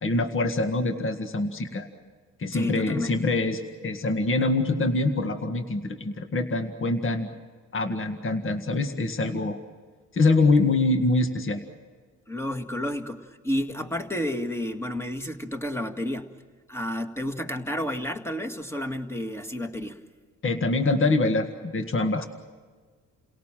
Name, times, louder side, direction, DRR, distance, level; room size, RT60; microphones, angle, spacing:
voice 1, 0.0-1.9 2.4-7.3 7.7-9.6 10.1-11.6 20.4-22.3, left 2 dB, 45° left, 6 dB, 1.9 m, -24 dB
voice 2, 2.5-3.2 12.3-16.3 16.7-20.0 22.2-22.3, left 1 dB, 10° left, 6 dB, 2.1 m, -31 dB
29.5 x 18.0 x 7.6 m, 1.5 s
cardioid pair, 90°, 30 cm